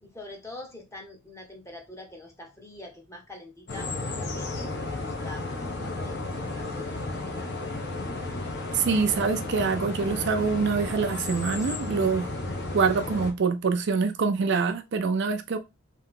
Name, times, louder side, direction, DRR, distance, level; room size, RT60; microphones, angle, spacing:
voice 1, 0.0-3.9 4.2-7.5, left 2 dB, 15° left, 0.9 m, -45 dB
sound 1, 3.7-13.3, left 2 dB, 50° left, 1.0 m, -33 dB
voice 2, 8.7-12.3 12.7-15.6, right 5 dB, 50° right, 0.4 m, -25 dB
3.3 x 2.8 x 3.7 m
head